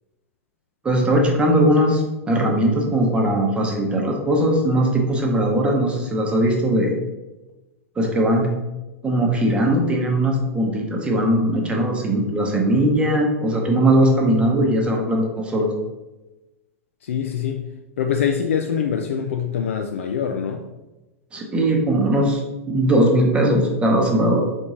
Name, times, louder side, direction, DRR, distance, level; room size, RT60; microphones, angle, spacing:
voice 1, 0.8-6.9 8.0-8.5 9.0-15.7 21.3-22.4 22.7-24.4, right 1 dB, 15° right, 1 dB, 0.8 m, -19 dB
voice 2, 17.0-17.6 18.0-20.6, left 7 dB, 60° left, 4 dB, 0.3 m, -24 dB
4.5 x 3.0 x 3.7 m, 1.1 s
figure-of-eight pair, 95°, 8 cm